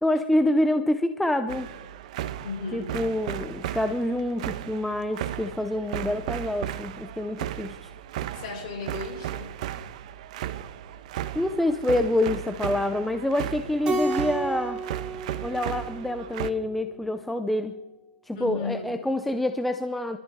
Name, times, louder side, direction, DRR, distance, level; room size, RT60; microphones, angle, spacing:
voice 1, 0.0-1.7 2.7-7.9 11.3-14.8 15.4-17.8 18.3-20.2, left 1 dB, ahead, 8 dB, 0.4 m, -27 dB
sound 1, 1.5-16.5, right 11 dB, 45° right, 0.9 m, -35 dB
voice 2, 2.4-3.0 8.3-9.5 18.3-18.9, left 4 dB, 45° left, 0 dB, 5.8 m, -35 dB
Keyboard (musical), 13.8-16.5, right 2 dB, 15° right, 2.7 m, -31 dB
26.0 x 13.5 x 3.5 m, 1.1 s
hypercardioid pair, 165°, 5 cm